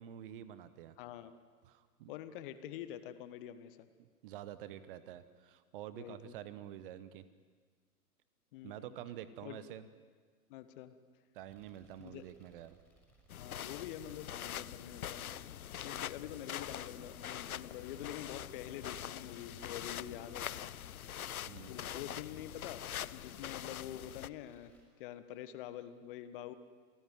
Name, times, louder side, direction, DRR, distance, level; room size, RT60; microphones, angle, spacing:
voice 1, 0.0-1.0 1.7-2.1 4.2-7.2 8.6-9.8 11.3-12.8 21.5-21.8, right 11 dB, 35° right, 14 dB, 1.2 m, -48 dB
voice 2, 1.0-1.3 2.1-3.9 5.9-6.4 8.5-9.0 9.4-9.6 10.5-10.9 12.0-12.2 13.3-15.3 15.8-20.7 21.7-22.8 23.1-24.7 25.0-26.5, left 11 dB, 35° left, 12 dB, 1.4 m, -46 dB
sound 1, 11.5-24.8, right 2 dB, ahead, 6.4 m, -67 dB
sound 2, 13.3-24.3, left 10 dB, 60° left, 0.7 m, -44 dB
28.0 x 18.0 x 9.5 m, 1.5 s
figure-of-eight pair, 110°, 48 cm